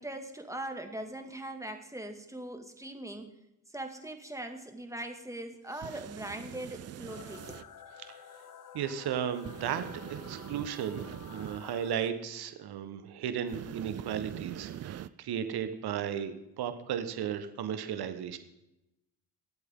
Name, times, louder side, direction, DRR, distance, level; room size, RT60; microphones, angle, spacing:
voice 1, 0.0-3.3 3.7-7.6, right 1 dB, 5° right, 5 dB, 2.2 m, -41 dB
sound 1, 5.7-7.6 9.4-11.7 13.5-15.1, right 11 dB, 35° right, 0.5 m, -43 dB
sound 2, 7.1-12.1, left 6 dB, 45° left, 1.2 m, -50 dB
voice 2, 8.7-18.4, right 9 dB, 55° right, 10 dB, 1.3 m, -35 dB
22.0 x 8.2 x 3.8 m, 0.88 s
hypercardioid pair, 55°, 45 cm